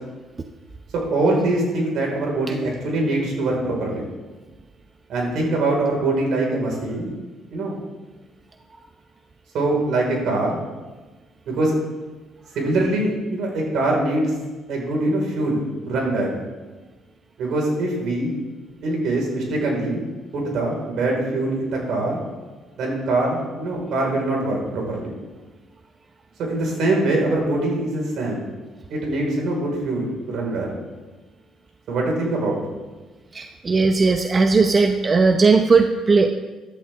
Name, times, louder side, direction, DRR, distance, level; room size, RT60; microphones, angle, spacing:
voice 1, 0.9-4.0 5.1-7.1 7.5-7.8 9.5-10.6 11.5-11.8 12.5-14.3 14.7-16.4 17.4-18.3 18.8-20.0 20.3-22.2 22.7-25.1 26.4-28.4 28.9-30.7 31.9-32.6, right 2 dB, 70° right, -1 dB, 4.8 m, -23 dB
voice 2, 33.3-36.3, right 4 dB, 35° right, 6 dB, 0.8 m, -17 dB
14.5 x 11.5 x 3.6 m, 1.2 s
supercardioid pair, 80°, 0 cm